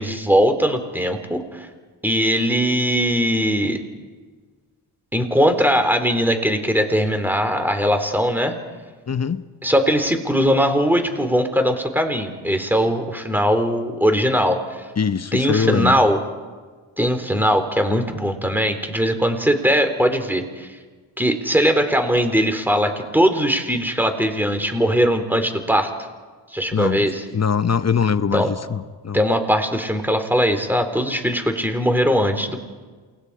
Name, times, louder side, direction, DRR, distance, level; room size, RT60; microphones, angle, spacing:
voice 1, 0.0-1.7 2.0-3.8 5.1-8.6 9.6-14.8 15.3-16.2 17.0-20.7 21.2-25.9 26.5-27.2 28.3-28.5 29.1-32.6, equal, 5° right, 6 dB, 3.9 m, -20 dB
voice 2, 9.1-9.4 15.0-16.0 26.7-29.2, left 6 dB, 35° left, 13 dB, 0.9 m, -22 dB
28.5 x 21.0 x 5.0 m, 1.4 s
supercardioid pair, 50°, 46 cm